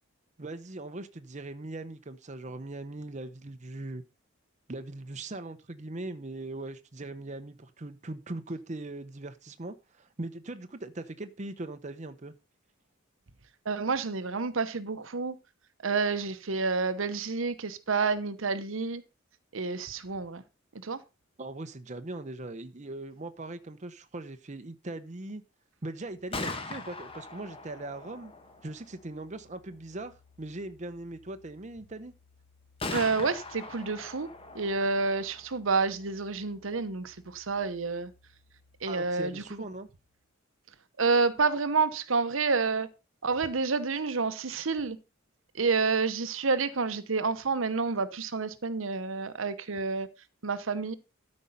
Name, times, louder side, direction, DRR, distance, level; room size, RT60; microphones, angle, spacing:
voice 1, 0.4-4.0 4.7-12.3 21.4-25.4 25.8-28.3 28.6-32.1 38.9-39.9, right 2 dB, 35° right, 0.8 m, -40 dB
voice 2, 13.7-15.3 15.8-19.0 19.5-20.4 20.8-21.0 32.9-34.3 34.5-38.1 38.8-39.4 41.0-42.9 43.2-45.0 45.6-50.1 50.4-51.0, right 4 dB, 70° right, 0.9 m, -29 dB
Gunshot gunfire, 26.1-39.9, left 3 dB, 25° left, 1.5 m, -44 dB
12.5 x 5.4 x 5.3 m
head